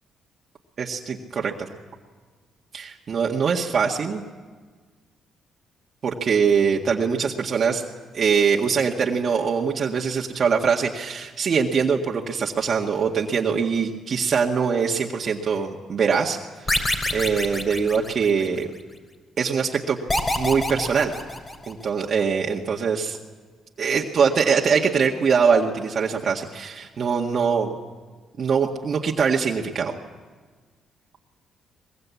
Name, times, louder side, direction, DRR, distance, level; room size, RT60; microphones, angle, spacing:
voice 1, 0.8-1.7 2.7-4.2 6.0-7.8 8.1-16.7 17.1-18.7 19.4-20.0 20.4-21.2 21.7-23.2 23.8-27.7 28.4-29.9, right 6 dB, 50° right, -1 dB, 1.8 m, -23 dB
sound 1, 16.7-18.6 20.1-21.9, left 1 dB, 25° left, 3.8 m, -26 dB
22.5 x 21.5 x 8.5 m, 1.5 s
cardioid pair, 90°, 0 cm